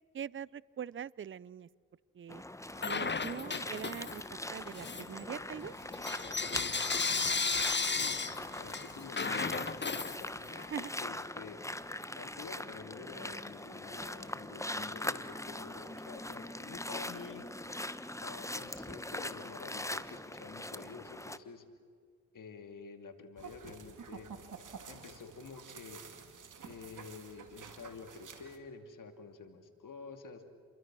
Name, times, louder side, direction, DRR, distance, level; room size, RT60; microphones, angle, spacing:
voice 1, 0.1-1.7 2.2-2.4 2.8-4.2 4.5-5.8 10.7-10.9, right 8 dB, 40° right, 23 dB, 0.6 m, -42 dB
sound 1, 2.3-21.4, left 1 dB, 10° left, 1.1 m, -42 dB
Bell / Coin (dropping), 2.8-4.3 4.7-10.7, left 4 dB, 35° left, 1.2 m, -35 dB
voice 2, 7.9-10.3 11.0-11.6 12.1-17.5 18.2-21.6 22.3-24.4 24.9-26.0 26.6-30.4, left 5 dB, 80° left, 7 dB, 2.6 m, -49 dB
sound 2, 23.4-28.6, right 6 dB, 75° right, 2.4 m, -50 dB
29.0 x 23.0 x 6.2 m, 2.1 s
cardioid pair, 50°, 31 cm